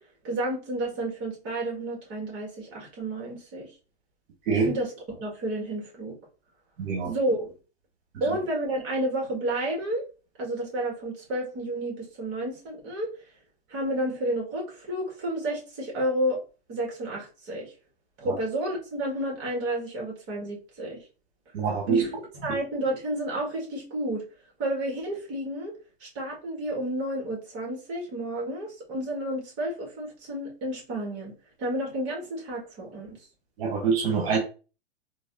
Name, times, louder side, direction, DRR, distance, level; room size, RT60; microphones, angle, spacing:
voice 1, 0.2-3.7 4.5-6.1 7.1-7.5 8.2-10.0 10.4-13.1 13.7-16.4 16.7-17.7 18.2-21.0 21.9-22.2 22.4-24.2 24.6-25.7 26.0-31.3 31.6-33.2, right 1 dB, 35° right, -2 dB, 2.0 m, -31 dB
voice 2, 6.8-7.1 18.2-18.3 21.5-22.0 33.6-34.4, right 5 dB, 65° right, -2 dB, 1.4 m, -25 dB
3.9 x 2.9 x 2.7 m, 0.35 s
hypercardioid pair, 130°, 31 cm